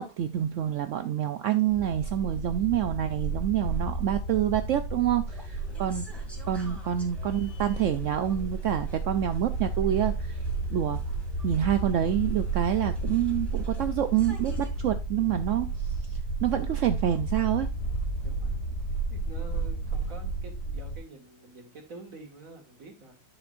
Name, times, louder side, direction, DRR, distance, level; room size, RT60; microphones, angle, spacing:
voice 1, 0.0-10.4 10.7-11.0 11.4-15.9 16.4-17.7, right 11 dB, 80° right, 0.7 m, -27 dB
sound 1, 1.7-21.0, right 3 dB, 60° left, 2.1 m, -32 dB
sound 2, 5.3-14.7, left 1 dB, ahead, 1.8 m, -52 dB
voice 2, 5.7-6.0 18.2-18.8 19.1-23.2, right 2 dB, 50° right, 2.2 m, -48 dB
10.5 x 6.3 x 2.5 m
omnidirectional pair, 1.9 m